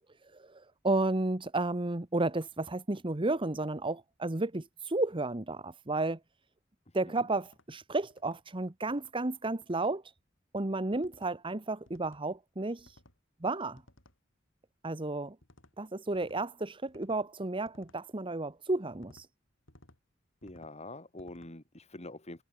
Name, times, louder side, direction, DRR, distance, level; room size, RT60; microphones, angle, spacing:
voice 1, 0.3-6.2 6.9-10.0 10.5-13.0 13.4-13.8 14.8-15.4 15.8-19.3, right 2 dB, 25° right, 1.2 m, -32 dB
voice 2, 6.9-7.3 20.4-22.4, left 2 dB, 35° left, 3.6 m, -46 dB
sound 1, 7.4-7.7 8.1-8.4 8.8-9.1 9.6-9.9 10.9-11.3 11.9-12.2 12.8-13.2 13.8-14.2 15.4-15.7 16.1-16.5 16.9-17.2 17.6-18.0 18.9-19.3 19.7-20.0 20.4-20.7 21.2-21.5, left 1 dB, 70° left, 5.5 m, -60 dB
head